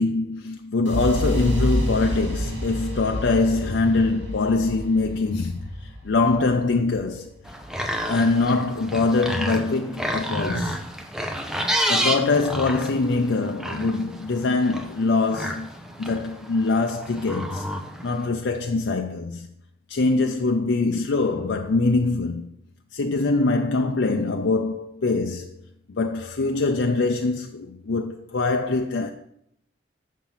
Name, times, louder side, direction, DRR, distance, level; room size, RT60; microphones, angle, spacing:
voice 1, 0.0-7.3 8.1-10.8 11.9-15.7 16.0-17.7 18.0-19.5 19.9-22.5 22.9-25.6 25.9-29.1, left 3 dB, 85° left, 0.5 m, -23 dB
sound 1, 0.9-8.8, equal, 80° right, 2.3 m, -29 dB
sound 2, 7.4-18.3, equal, 5° right, 0.7 m, -30 dB
7.4 x 6.0 x 5.5 m
head